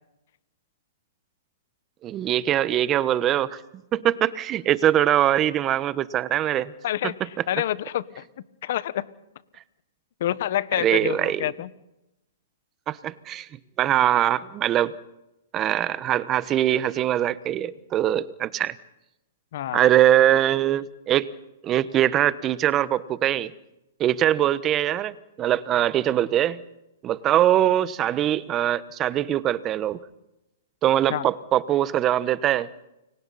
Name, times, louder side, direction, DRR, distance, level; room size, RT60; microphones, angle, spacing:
voice 1, 2.0-3.6 3.9-6.7 7.0-7.1 10.7-11.5 12.9-13.5 13.8-14.9 15.5-18.7 19.7-21.3 21.6-23.5 24.0-26.6 27.0-30.0 30.8-32.7, right 12 dB, 25° right, 17 dB, 1.1 m, -22 dB
voice 2, 6.8-8.2 8.6-9.0 10.2-11.7 19.5-19.9 31.1-31.2, left 12 dB, 60° left, 16 dB, 1.4 m, -27 dB
30.0 x 24.0 x 4.3 m, 0.90 s
hypercardioid pair, 130°, 0 cm